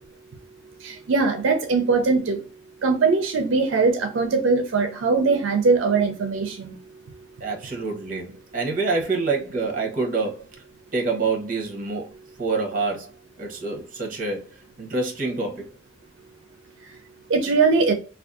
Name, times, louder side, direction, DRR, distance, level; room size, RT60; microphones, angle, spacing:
voice 1, 0.8-2.4 2.8-6.7 17.3-17.9, right 4 dB, 80° right, 0.4 m, -21 dB
voice 2, 7.4-10.5 10.9-12.1 12.4-13.1 13.4-15.7, right 3 dB, 45° right, 0.8 m, -27 dB
2.5 x 2.3 x 2.4 m
head